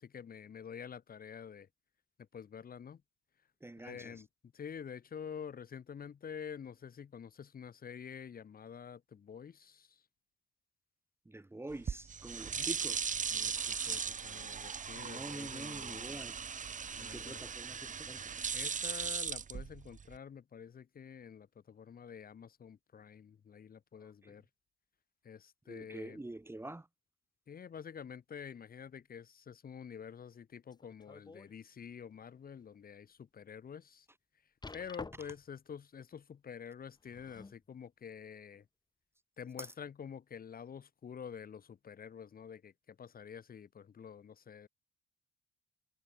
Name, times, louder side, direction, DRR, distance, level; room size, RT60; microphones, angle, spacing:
voice 1, 0.0-1.7 2.2-3.0 3.8-4.3 4.5-10.0 12.5-12.7 13.3-16.2 17.0-17.5 18.5-24.4 25.2-26.2 27.5-34.1 34.7-38.7 39.4-44.7, left 7 dB, 45° left, 2.5 m, -48 dB
voice 2, 3.6-4.2 11.2-13.2 13.6-14.0 15.0-16.5 17.0-18.4 24.0-24.3 25.7-26.9 35.1-35.3 39.6-39.7, right 2 dB, 10° right, 1.5 m, -47 dB
sound 1, 11.7-20.2, right 6 dB, 40° right, 1.6 m, -38 dB
sound 2, 30.7-31.5 32.0-32.2 32.7-32.8 34.6-35.5 36.9-37.6 38.5-38.6, left 3 dB, 20° left, 1.8 m, -49 dB
cardioid pair, 90°, 20 cm